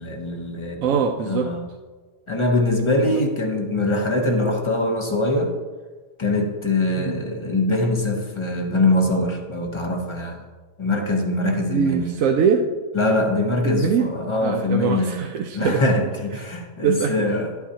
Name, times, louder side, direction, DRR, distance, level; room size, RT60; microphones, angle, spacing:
voice 1, 0.0-0.8 1.2-1.6 2.3-5.5 6.2-10.4 10.8-12.2 12.9-15.2 15.5-17.5, left 2 dB, 25° left, 3 dB, 0.9 m, -23 dB
voice 2, 0.8-1.5 3.1-3.2 7.0-7.2 11.7-12.7 13.6-14.0 14.4-15.8 16.8-17.2, right 7 dB, 90° right, 3 dB, 1.0 m, -22 dB
11.0 x 8.3 x 2.8 m, 1.4 s
omnidirectional pair, 1.3 m